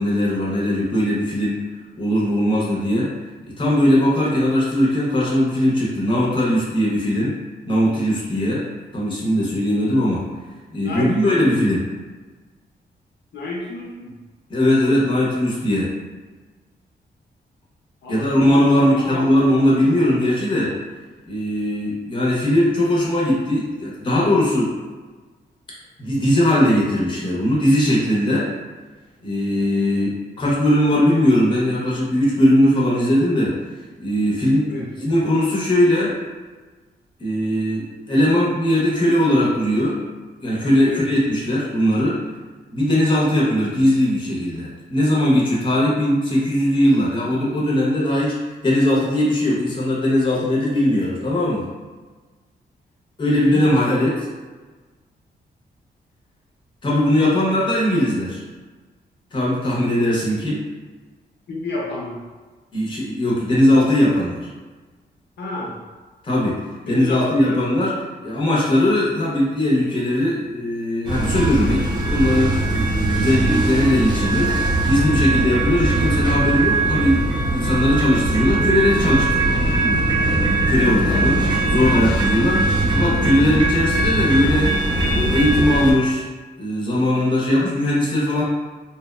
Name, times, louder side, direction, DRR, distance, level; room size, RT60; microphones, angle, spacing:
voice 1, 0.0-1.6 2.0-3.1 3.5-7.4 7.7-8.7 8.9-10.2 10.7-11.8 14.5-15.9 18.1-20.8 21.3-24.8 26.0-28.5 29.2-33.6 34.0-36.2 37.2-40.0 40.4-42.2 42.7-51.7 53.2-54.3 56.8-58.4 59.3-60.6 62.7-64.5 66.2-66.6 66.9-67.9 68.2-80.0 80.7-84.7 85.1-86.2 86.6-88.4, left 1 dB, 25° left, -5 dB, 0.6 m, -19 dB
voice 2, 10.8-11.4 13.3-14.2 18.0-19.3 34.7-34.9 40.8-41.0 53.4-53.7 61.5-62.2 65.4-65.8 66.9-67.6 76.4-76.6, left 2 dB, 75° left, -3 dB, 0.6 m, -30 dB
sound 1, 71.0-85.9, right 2 dB, 25° right, 0.4 m, -20 dB
2.7 x 2.0 x 2.3 m, 1.3 s
wide cardioid pair, 145°, 18 cm